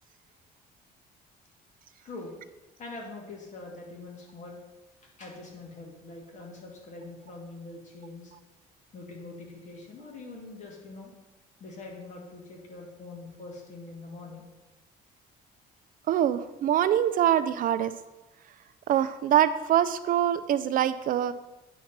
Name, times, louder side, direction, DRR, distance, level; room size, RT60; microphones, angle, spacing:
voice 1, 2.8-4.6 5.0-8.3 8.9-11.1 11.6-14.4, left 3 dB, 45° left, -1 dB, 2.4 m, -43 dB
voice 2, 16.1-17.9 18.9-21.3, right 10 dB, 55° right, 13 dB, 0.4 m, -24 dB
9.0 x 4.4 x 5.9 m, 1.1 s
cardioid pair, 110°, 17 cm